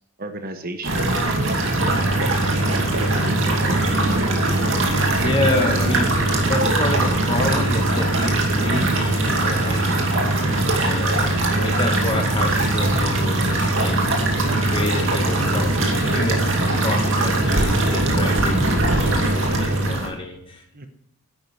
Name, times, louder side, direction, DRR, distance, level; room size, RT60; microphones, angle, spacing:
voice 1, 0.2-4.7 20.7-20.9, right 1 dB, 40° right, 7 dB, 1.1 m, -35 dB
sound 1, 0.8-20.1, right 2 dB, 60° right, 2.4 m, -22 dB
sound 2, 1.8-19.9, right 1 dB, 60° left, 3.9 m, -26 dB
voice 2, 5.1-6.1 6.5-10.0 10.7-14.0 14.6-15.8 16.0-18.6 19.0-20.6, left 2 dB, 25° left, 2 dB, 2.1 m, -28 dB
11.0 x 9.3 x 4.6 m, 0.77 s
head